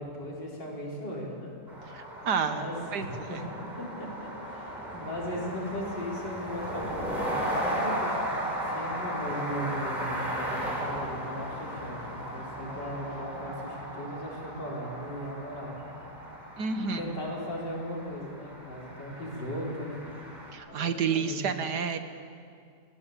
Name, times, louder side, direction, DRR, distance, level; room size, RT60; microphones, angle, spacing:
voice 1, 0.0-1.5 2.3-8.2 8.7-15.9 16.8-20.2 20.7-21.5, equal, 80° left, -3 dB, 5.9 m, -37 dB
sound 1, 1.7-20.5, equal, 25° right, 5.1 m, -36 dB
voice 2, 1.9-2.7 2.9-3.1 16.6-17.0 20.5-22.0, right 6 dB, 70° right, 9 dB, 1.9 m, -29 dB
29.0 x 17.5 x 8.5 m, 2.3 s
omnidirectional pair, 1.8 m